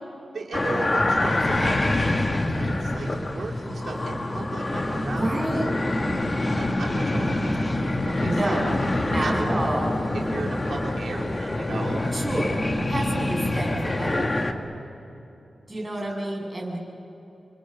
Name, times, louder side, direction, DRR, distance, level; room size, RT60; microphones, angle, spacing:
voice 1, 0.3-5.7 6.1-6.2 6.5-8.9 9.1-9.4 9.7-12.0 15.8-15.9, right 3 dB, 65° right, -1 dB, 2.7 m, -36 dB
sound 1, 0.5-14.5, left 1 dB, 25° left, 1.6 m, -26 dB
voice 2, 5.0-5.7 8.2-10.0 12.1-14.6 15.7-16.8, right 1 dB, 20° right, -3 dB, 7.6 m, -29 dB
30.0 x 24.5 x 7.3 m, 3.0 s
wide cardioid pair, 170°, 0 cm